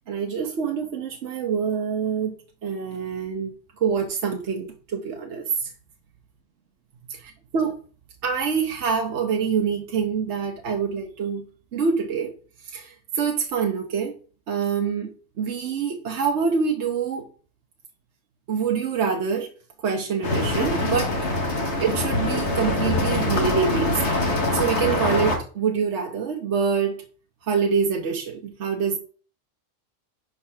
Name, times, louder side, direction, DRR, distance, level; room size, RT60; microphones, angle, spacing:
voice 1, 0.1-2.3 2.6-3.5 3.8-5.7 7.1-7.8 8.2-11.4 11.7-12.3 12.7-14.1 14.5-15.1 15.4-17.3 18.5-19.5 19.8-21.1 21.8-24.0 24.5-27.0 27.5-29.0, right 6 dB, 65° right, 1.2 m, -25 dB
sound 1, 20.2-25.4, left 2 dB, 65° left, 1.5 m, -24 dB
5.8 x 4.0 x 5.6 m
omnidirectional pair, 1.3 m